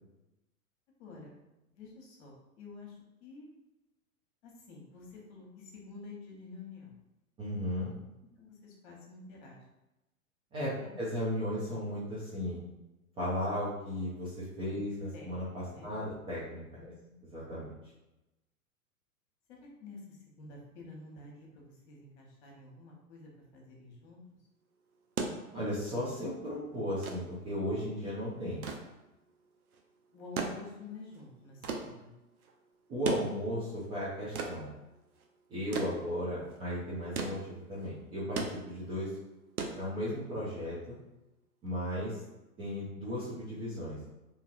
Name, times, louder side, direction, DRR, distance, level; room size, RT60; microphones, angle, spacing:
voice 1, 1.0-1.4 1.7-3.5 4.4-6.9 8.4-9.6 10.7-11.0 14.7-14.8 15.1-15.3 15.6-16.0 16.8-17.2 19.6-24.2 30.1-32.1, left 3 dB, 50° left, -2 dB, 1.1 m, -49 dB
voice 2, 7.4-7.9 10.5-12.6 13.2-16.9 17.3-17.6 25.5-28.6 32.9-34.7 35.5-39.1 39.8-40.9 41.6-42.2 42.6-44.0, equal, 15° right, -9 dB, 0.4 m, -35 dB
sound 1, 24.9-40.4 41.7-41.8, right 4 dB, 80° right, 0.6 m, -40 dB
2.8 x 2.6 x 2.5 m, 0.97 s
hypercardioid pair, 105°, 43 cm